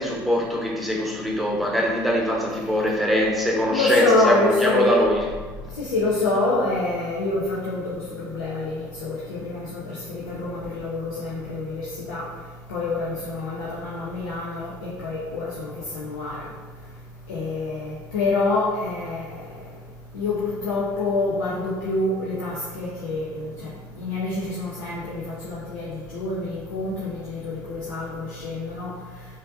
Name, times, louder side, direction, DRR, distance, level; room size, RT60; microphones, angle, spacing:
voice 1, 0.0-5.3, equal, ahead, -1 dB, 0.9 m, -23 dB
voice 2, 3.5-4.9 5.8-12.2 12.7-16.5 17.3-19.5 20.1-23.7 23.9-28.9, left 2 dB, 85° left, -6 dB, 0.6 m, -26 dB
5.1 x 2.7 x 2.6 m, 1.4 s
hypercardioid pair, 65°, 11 cm